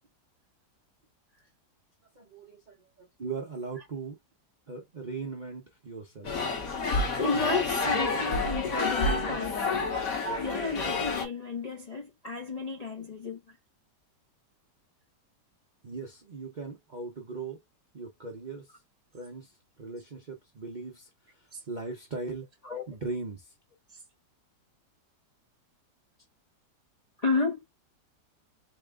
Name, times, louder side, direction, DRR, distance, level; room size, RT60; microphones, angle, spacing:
voice 1, 2.2-4.2 4.7-6.3 15.8-17.6 17.9-18.7 19.1-19.5 19.8-22.5 22.9-23.5, right 4 dB, 60° right, 0.4 m, -39 dB
sound 1, 6.2-11.3, left 3 dB, 55° left, 1.6 m, -29 dB
voice 2, 7.1-9.9 10.4-13.4 21.5-21.6 22.6-22.9 27.2-27.6, left 3 dB, 80° left, 0.3 m, -32 dB
4.2 x 2.3 x 3.4 m
omnidirectional pair, 1.9 m